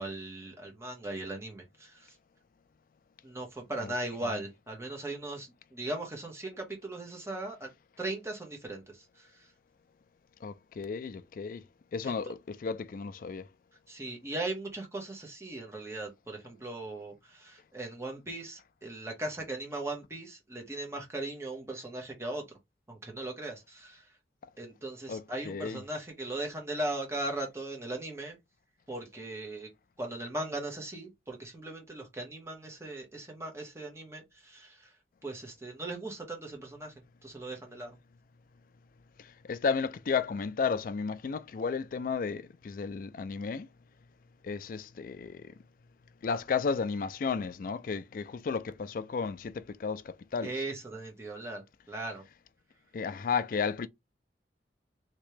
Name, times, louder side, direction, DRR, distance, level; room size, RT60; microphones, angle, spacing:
voice 1, 0.0-2.1 3.2-7.7 8.0-9.3 12.0-12.2 13.9-22.4 22.9-24.0 24.6-28.4 28.9-29.7 30.0-34.9 35.2-36.9 37.2-37.9 50.4-52.2, right 2 dB, 15° right, 1.1 m, -38 dB
voice 2, 10.4-11.6 11.9-13.5 25.1-25.8 39.2-43.7 44.4-45.5 46.2-50.6 52.9-53.9, left 5 dB, 50° left, 0.3 m, -33 dB
3.1 x 2.9 x 3.2 m
head